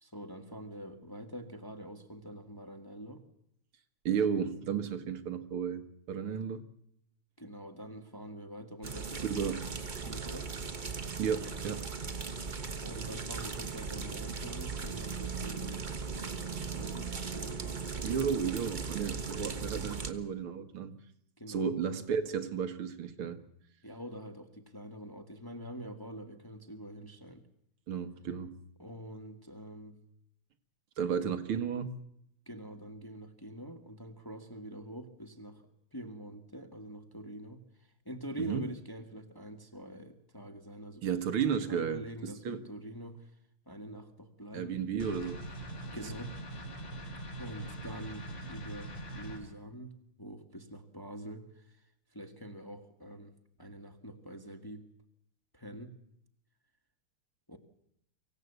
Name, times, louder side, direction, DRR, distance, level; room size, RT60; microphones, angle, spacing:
voice 1, 0.0-3.2 7.4-9.5 10.0-10.5 12.8-18.3 21.4-21.7 23.8-27.4 28.8-30.0 32.5-35.6 35.9-37.6 38.0-41.2 41.7-43.3 43.7-44.8 45.9-46.4 47.4-51.8 52.1-54.9 55.5-56.0 57.5-57.6, equal, 10° left, 1.4 m, -45 dB
voice 2, 4.1-5.8 6.1-6.6 9.2-9.6 11.2-11.8 18.0-21.0 21.5-23.4 27.9-28.6 31.0-31.9 38.4-38.6 41.0-42.6 44.5-45.5, right 7 dB, 75° right, 2.3 m, -33 dB
sound 1, 8.8-20.1, right 5 dB, 30° right, 1.1 m, -38 dB
sound 2, 45.0-49.4, right 1 dB, 55° left, 5.2 m, -42 dB
24.5 x 16.5 x 8.1 m
omnidirectional pair, 2.4 m